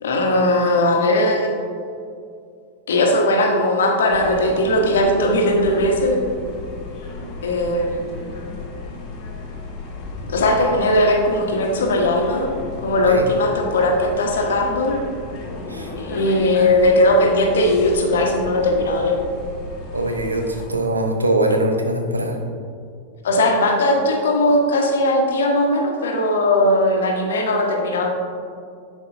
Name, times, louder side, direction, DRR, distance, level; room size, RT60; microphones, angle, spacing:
voice 1, 0.0-1.7 2.9-6.2 7.4-8.4 10.3-12.5 12.8-14.9 16.0-19.2 23.2-28.1, left 1 dB, 65° left, 1 dB, 1.1 m, -18 dB
sound 1, 4.1-20.7, left 2 dB, 40° left, 1.3 m, -34 dB
voice 2, 19.9-22.4, right 1 dB, 80° right, 4 dB, 0.7 m, -22 dB
11.0 x 4.6 x 2.6 m, 2.3 s
figure-of-eight pair, 90°, 0 cm